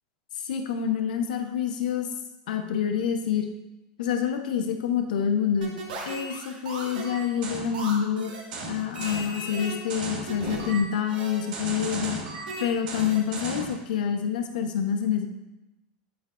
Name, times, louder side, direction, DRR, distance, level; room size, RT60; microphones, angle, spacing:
voice 1, 0.4-2.1 2.5-3.5 4.0-5.7 6.1-8.3 8.7-12.2 12.6-15.3, left 8 dB, 85° left, 5 dB, 0.9 m, -27 dB
sound 1, 5.6-13.8, right 2 dB, 85° right, 1.6 m, -35 dB
11.0 x 4.6 x 2.5 m, 0.98 s
supercardioid pair, 125°, 4 cm